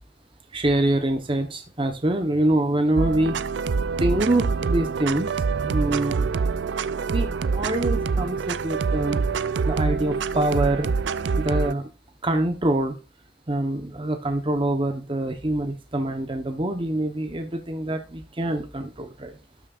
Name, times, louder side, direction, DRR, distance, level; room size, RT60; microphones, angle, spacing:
voice 1, 0.5-3.4 4.0-5.3 5.6-6.3 7.1-9.2 9.6-10.9 11.4-11.9 12.2-13.0 13.5-19.4, right 1 dB, 30° right, 5 dB, 1.0 m, -25 dB
sound 1, 3.0-11.7, right 5 dB, 75° right, 0.4 m, -25 dB
12.5 x 6.4 x 2.5 m, 0.32 s
head